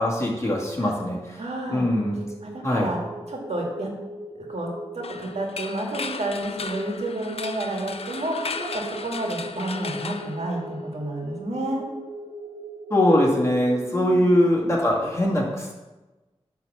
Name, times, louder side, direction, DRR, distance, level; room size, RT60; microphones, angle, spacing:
voice 1, 0.0-1.4 1.7-2.2 2.6-2.9 12.9-15.7, left 1 dB, 25° left, -3 dB, 1.9 m, -22 dB
voice 2, 1.4-1.9 2.4-3.0 3.3-3.9 4.4-4.7 4.9-11.8 13.8-14.3, right 1 dB, 85° right, -1 dB, 1.8 m, -30 dB
sound 1, 1.7-13.7, right 1 dB, 65° right, 1.1 m, -40 dB
sound 2, 5.0-11.0, left 4 dB, 70° left, 0.4 m, -36 dB
8.9 x 3.5 x 6.7 m, 1.1 s
wide cardioid pair, 70°, 11 cm